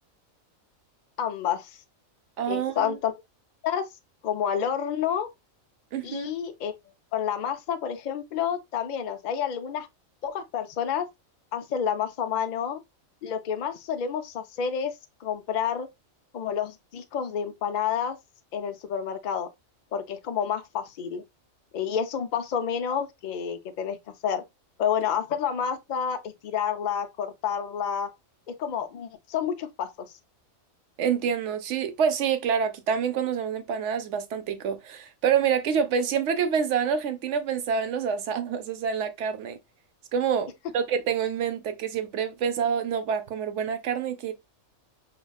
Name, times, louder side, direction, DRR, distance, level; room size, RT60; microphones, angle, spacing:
voice 1, 1.2-1.8 2.5-3.1 3.6-3.9 4.2-5.3 6.0-6.7 7.1-9.9 10.2-11.1 11.5-12.8 13.2-14.9 15.2-15.9 16.3-18.2 18.5-19.5 19.9-21.2 21.7-24.0 24.2-24.4 24.8-28.1 28.6-29.9, left 8 dB, 65° left, 0.4 m, -29 dB
voice 2, 2.4-3.0 5.9-6.3 31.0-39.6 40.1-44.3, right 7 dB, 65° right, 0.8 m, -27 dB
4.9 x 2.2 x 2.2 m
omnidirectional pair, 1.4 m